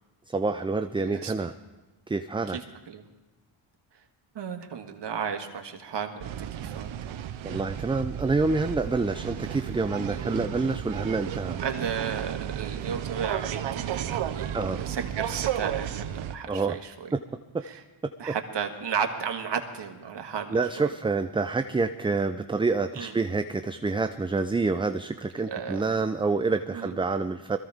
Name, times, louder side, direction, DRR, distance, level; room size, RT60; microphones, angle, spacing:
voice 1, 0.3-1.5 2.1-2.6 7.4-11.6 14.5-14.8 16.5-16.8 17.1-17.2 17.5-17.6 18.3-18.4 20.5-27.6, right 3 dB, 10° right, 9 dB, 0.4 m, -27 dB
voice 2, 1.0-1.5 2.5-3.0 4.4-6.9 11.6-17.1 17.6-17.8 18.2-20.9 23.0-23.1 25.4-26.0 26.7-27.0, right 7 dB, 60° right, 4 dB, 1.8 m, -34 dB
sound 1, 6.2-16.3, right 10 dB, 75° right, 0.9 m, -33 dB
21.0 x 15.0 x 3.6 m, 1.2 s
cardioid pair, 65°, 48 cm